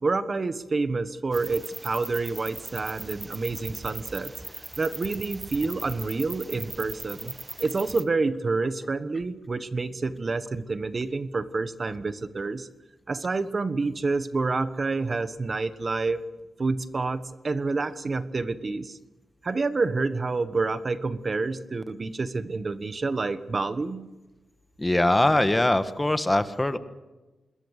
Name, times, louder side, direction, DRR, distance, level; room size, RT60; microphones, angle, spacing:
voice 1, 0.0-4.3 4.8-7.3 7.6-12.7 13.1-16.2 16.6-19.0 19.4-24.1, right 3 dB, 40° right, 12 dB, 1.2 m, -28 dB
sound 1, 1.3-8.0, right 2 dB, 20° right, 1.5 m, -39 dB
voice 2, 24.8-26.8, left 1 dB, 15° left, 10 dB, 1.4 m, -22 dB
26.0 x 21.0 x 6.6 m, 1.1 s
wide cardioid pair, 100°, 0 cm